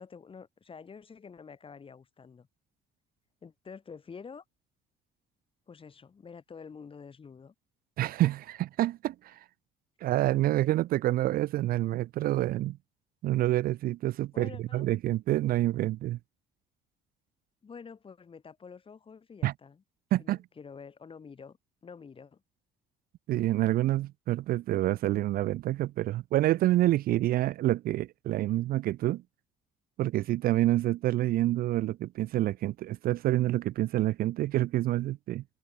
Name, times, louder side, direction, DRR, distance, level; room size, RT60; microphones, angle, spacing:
voice 1, 0.0-2.5 3.4-4.4 5.7-7.5 14.3-14.9 17.6-19.8 20.2-22.4, left 5 dB, 30° left, 5.6 m, -48 dB
voice 2, 8.0-9.4 10.0-12.8 13.2-16.2 19.4-19.5 20.1-20.4 23.3-29.2 30.0-35.4, right 15 dB, 60° right, 0.4 m, -27 dB
cardioid pair, 110°, 17 cm